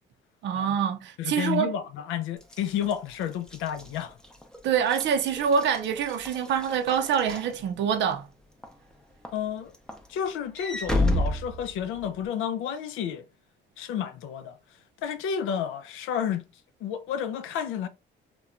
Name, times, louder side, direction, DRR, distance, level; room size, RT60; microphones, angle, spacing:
voice 1, 0.4-1.7 4.6-8.3, right 7 dB, 65° right, 0.4 m, -25 dB
voice 2, 1.2-4.2 9.3-9.7 10.1-13.3 13.8-14.6 15.0-16.4 16.8-17.9, left 9 dB, 85° left, 0.4 m, -31 dB
Walk footsteps / Slam, 2.4-8.1 8.6-8.9 9.3-12.3, left 1 dB, 5° left, 0.5 m, -32 dB
2.8 x 2.2 x 2.4 m
cardioid pair, 90°, 20 cm